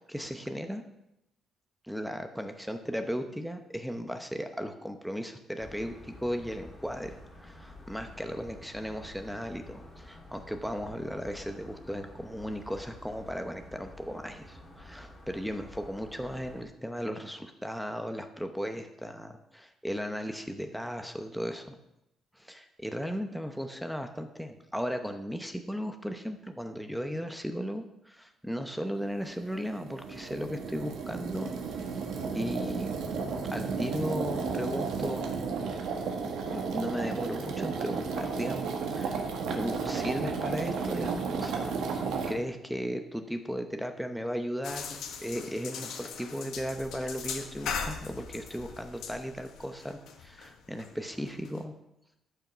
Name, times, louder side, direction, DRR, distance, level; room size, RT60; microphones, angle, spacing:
voice 1, 0.1-0.8 1.8-21.8 22.4-31.8 32.3-33.0 33.5-35.3 36.2-39.2 39.5-41.7 42.3-51.7, equal, ahead, 6 dB, 0.8 m, -36 dB
sound 1, 5.6-16.6, left 1 dB, 20° left, 2.2 m, -49 dB
sound 2, 29.2-42.3, right 5 dB, 80° right, 1.7 m, -33 dB
sound 3, 44.6-51.6, left 6 dB, 75° left, 1.2 m, -40 dB
13.0 x 5.8 x 6.1 m, 0.85 s
cardioid pair, 145°, 0 cm